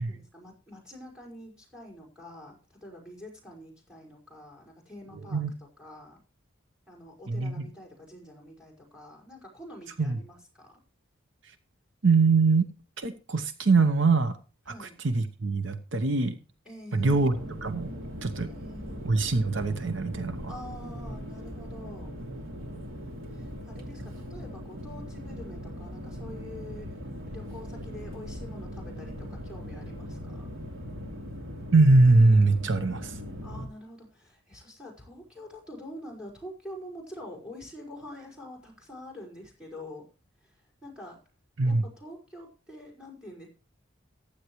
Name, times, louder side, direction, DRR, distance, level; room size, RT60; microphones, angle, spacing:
voice 1, 0.1-6.2 6.9-10.8 14.7-15.0 16.7-17.3 18.5-19.1 20.5-22.2 23.3-27.0 27.3-30.5 33.4-40.1 40.4-41.2 41.7-43.5, left 1 dB, 5° right, 5.4 m, -46 dB
voice 2, 7.3-7.7 10.0-10.2 12.0-12.7 13.0-14.4 14.7-16.4 16.9-17.4 17.6-17.9 18.2-18.5 19.0-20.5 31.7-33.2 41.6-41.8, right 3 dB, 65° right, 0.9 m, -23 dB
sound 1, 17.0-33.7, equal, 90° right, 2.7 m, -40 dB
15.0 x 10.0 x 3.1 m
head